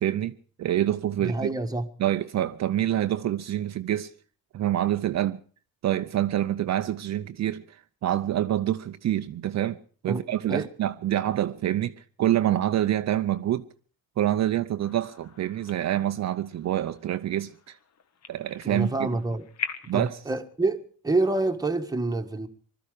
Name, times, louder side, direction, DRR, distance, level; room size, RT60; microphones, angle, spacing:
voice 1, 0.0-1.5 2.0-4.1 4.5-5.4 5.8-9.8 10.0-13.6 14.2-17.8 18.3-19.1 19.9-20.2, right 12 dB, 50° right, 0.7 m, -26 dB
voice 2, 1.2-1.9 10.1-10.2 10.5-10.7 18.6-19.5 19.9-22.5, right 2 dB, 10° right, 1.5 m, -27 dB
sound 1, 14.8-20.1, left 6 dB, 45° left, 1.3 m, -42 dB
20.5 x 13.0 x 4.9 m
cardioid pair, 110°, 36 cm